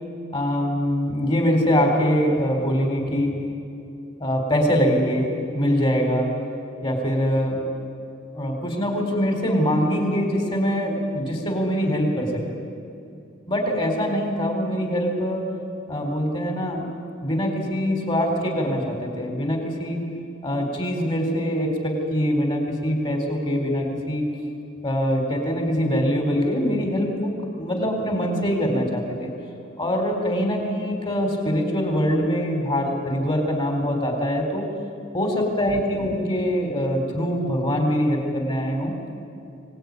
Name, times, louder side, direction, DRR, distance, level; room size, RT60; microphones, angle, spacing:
voice 1, 0.3-3.4 4.2-6.3 6.8-7.6 8.3-12.6 13.5-15.5 15.9-16.9 17.2-20.1 20.4-24.3 24.8-29.3 29.8-34.7 35.1-38.9, equal, 25° left, 3 dB, 4.0 m, -23 dB
24.5 x 19.0 x 9.6 m, 2.6 s
head